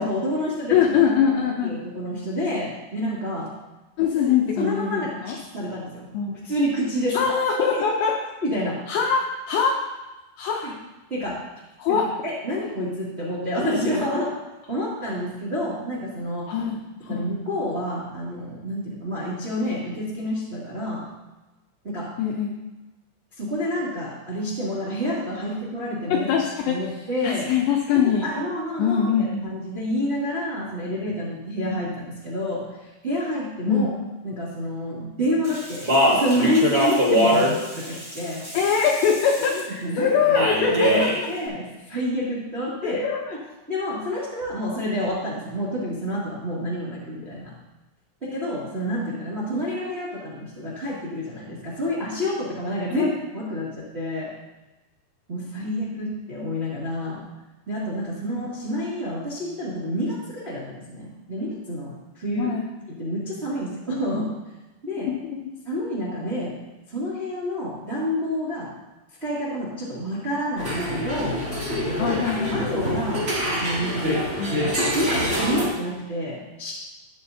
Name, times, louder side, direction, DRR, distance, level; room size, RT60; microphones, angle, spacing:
voice 1, 0.0-3.5 4.6-6.1 6.4-7.2 7.7-7.8 8.4-8.8 10.6-10.7 11.1-11.4 11.9-14.3 14.7-16.5 17.1-21.1 21.8-22.1 23.3-27.5 27.9-33.9 34.2-35.8 36.1-38.4 39.8-43.0 43.3-43.4 43.7-47.5 48.2-54.3 55.3-57.3 57.7-62.5 62.9-64.3 64.8-65.1 65.6-66.5 66.9-68.7 69.2-71.4 71.8-72.2 72.5-73.3 73.6-74.1 74.9-76.7, equal, 65° right, -7 dB, 0.6 m, -28 dB
voice 2, 0.7-1.8 4.0-5.4 6.1-6.4 7.1-8.2 8.9-9.8 10.4-10.7 11.8-12.1 16.5-16.8 17.0-17.3 22.2-22.6 26.1-26.9 27.2-28.3 28.8-29.5 33.7-33.9 38.5-41.1 42.8-43.4 52.9-53.1 62.4-62.6 65.0-65.5 72.0-72.7 74.4-74.8, left 7 dB, 85° left, 0 dB, 2.5 m, -23 dB
Speech, 35.4-39.6 40.3-41.2, equal, 10° right, 3.0 m, -22 dB
sound 1, 70.6-75.7, equal, 35° right, 1.0 m, -26 dB
13.5 x 9.4 x 2.7 m, 1.1 s
omnidirectional pair, 6.0 m